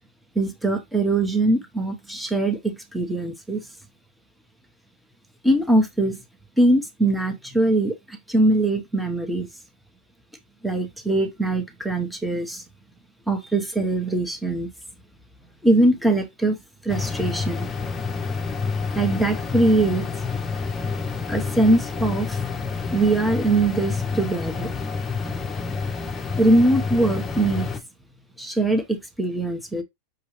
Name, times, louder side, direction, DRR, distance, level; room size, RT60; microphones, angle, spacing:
voice 1, 0.3-3.7 5.4-6.2 6.6-9.5 10.6-12.6 13.3-14.7 15.6-16.6 16.8-17.7 18.9-20.1 21.3-22.4 22.9-24.7 26.3-27.7 28.4-29.8, right 2 dB, 5° right, 1.1 m, -22 dB
sound 1, 16.9-27.8, left 4 dB, 20° left, 0.8 m, -28 dB
6.0 x 2.7 x 3.2 m
hypercardioid pair, 100°, 0 cm